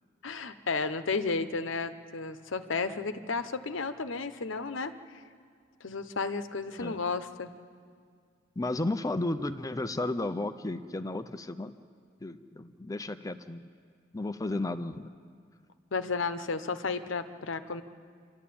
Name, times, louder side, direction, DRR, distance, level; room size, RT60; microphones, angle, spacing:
voice 1, 0.2-4.9 5.8-7.5 15.9-17.8, left 4 dB, 70° left, 10 dB, 0.9 m, -33 dB
voice 2, 8.6-11.7 12.2-13.6 14.1-15.1, left 2 dB, 15° left, 10 dB, 0.5 m, -33 dB
28.0 x 12.5 x 8.6 m, 2.1 s
head